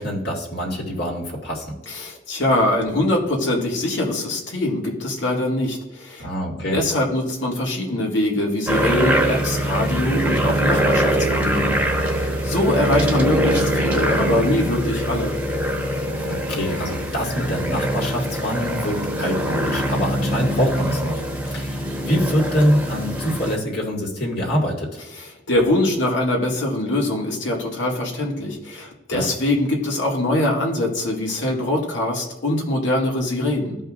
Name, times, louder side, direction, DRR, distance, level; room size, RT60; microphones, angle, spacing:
voice 1, 0.0-1.7 6.2-6.8 16.3-21.2 21.5-24.9 29.1-29.3, equal, 60° left, -3 dB, 2.3 m, -24 dB
voice 2, 1.9-6.3 6.5-15.3 25.2-33.8, left 1 dB, 85° left, -1 dB, 2.2 m, -23 dB
sound 1, 8.7-23.6, right 1 dB, 10° right, 1.1 m, -23 dB
14.5 x 5.4 x 2.5 m, 1.0 s
head